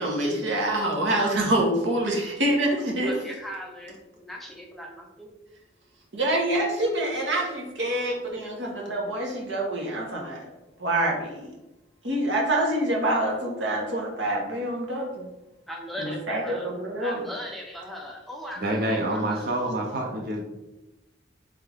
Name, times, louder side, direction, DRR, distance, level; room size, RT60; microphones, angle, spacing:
voice 1, 0.0-3.2 6.1-10.4 10.8-11.5 12.0-15.2 16.0-17.2, right 1 dB, 85° right, -1 dB, 1.1 m, -26 dB
voice 2, 3.0-5.3 15.7-16.7 17.0-19.5, equal, ahead, -1 dB, 0.5 m, -39 dB
voice 3, 18.6-20.4, right 1 dB, 55° right, -1 dB, 0.6 m, -27 dB
3.6 x 3.4 x 3.4 m, 1.0 s
head